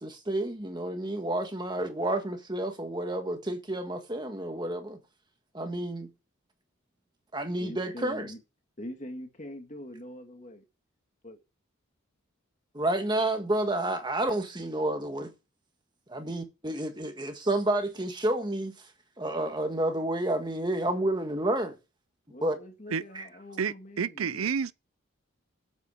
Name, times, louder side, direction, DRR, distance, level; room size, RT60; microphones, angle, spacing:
voice 1, 0.0-5.0 5.5-6.1 7.3-8.3 12.7-15.3 16.1-18.7 19.2-21.7 22.4-22.5 23.1-23.2, right 1 dB, 20° right, 1.5 m, -30 dB
voice 2, 7.6-8.4 8.8-10.6 11.2-11.4 22.3-24.5, left 1 dB, 35° left, 1.9 m, -43 dB
voice 3, 23.6-24.7, right 6 dB, 85° right, 0.6 m, -30 dB
8.2 x 8.1 x 7.2 m
head